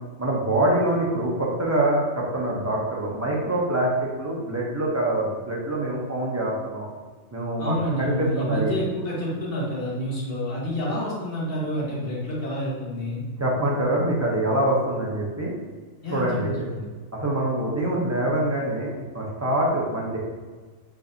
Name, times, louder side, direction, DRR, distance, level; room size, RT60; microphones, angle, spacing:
voice 1, 0.2-3.9 4.2-6.9 7.3-8.8 13.4-15.5 16.1-16.7 17.1-20.2, right 1 dB, 20° right, -4 dB, 0.5 m, -25 dB
voice 2, 7.6-13.2 16.0-16.9, equal, 45° left, -6 dB, 1.5 m, -28 dB
5.0 x 3.9 x 2.7 m, 1.4 s
omnidirectional pair, 1.4 m